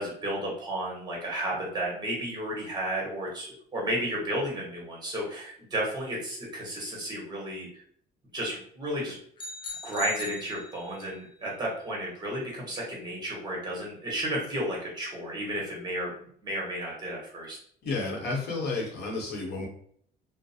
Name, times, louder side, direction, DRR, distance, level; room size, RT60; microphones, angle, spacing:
voice 1, 0.0-7.8 8.3-9.1 9.8-16.1 16.4-17.6, right 1 dB, 25° right, -3 dB, 1.2 m, -33 dB
sound 1, 9.4-11.2, left 2 dB, 30° left, 0.5 m, -40 dB
voice 2, 17.8-19.7, left 3 dB, 70° left, -2 dB, 0.9 m, -31 dB
2.4 x 2.1 x 2.7 m, 0.63 s
cardioid pair, 110°, 17 cm